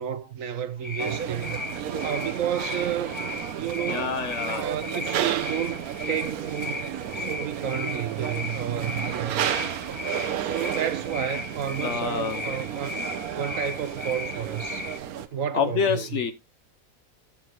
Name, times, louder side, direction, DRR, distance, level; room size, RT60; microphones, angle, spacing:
voice 1, 0.0-1.6 2.0-3.2 3.5-4.2 4.5-5.8 6.1-9.5 10.4-13.0 13.3-14.9 15.3-16.2, right 9 dB, 70° right, 1.3 m, -31 dB
sound 1, 0.8-15.0, left 4 dB, 20° left, 1.0 m, -36 dB
sound 2, 1.0-15.3, right 10 dB, 85° right, 1.2 m, -32 dB
voice 2, 3.9-4.7 11.8-12.4 15.5-16.3, left 6 dB, 60° left, 1.1 m, -27 dB
13.0 x 7.3 x 3.0 m
omnidirectional pair, 1.5 m